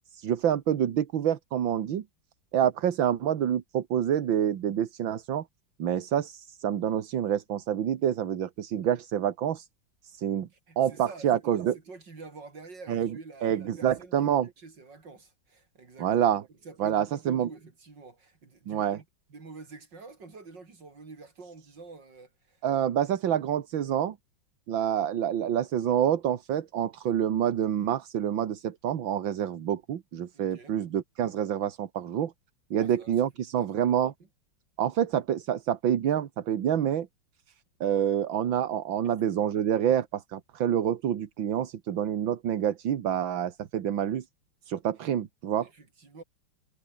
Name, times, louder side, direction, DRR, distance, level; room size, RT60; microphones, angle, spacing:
voice 1, 0.1-2.0 2.5-5.4 5.8-9.7 10.0-10.5 10.8-11.7 12.9-13.1 13.4-14.5 16.0-16.4 16.8-17.5 18.7-19.0 22.6-24.2 24.7-32.3 32.7-34.1 34.8-37.1 37.8-44.2 44.7-45.7, right 10 dB, 80° right, 2.1 m, -27 dB
voice 2, 10.7-16.3 16.6-22.6 30.3-30.8 32.8-33.3 33.6-33.9 39.0-39.1 45.6-46.2, right 4 dB, 65° right, 4.4 m, -48 dB
omnidirectional pair, 2.1 m